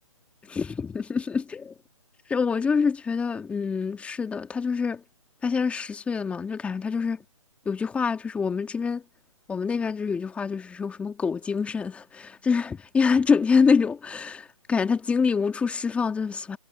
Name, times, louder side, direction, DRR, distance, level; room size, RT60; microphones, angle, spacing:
voice 1, 0.4-1.7 2.3-5.0 5.4-7.2 7.7-9.0 9.5-16.6, left 5 dB, 5° left, 1.9 m, -26 dB
figure-of-eight pair, 145°, 18 cm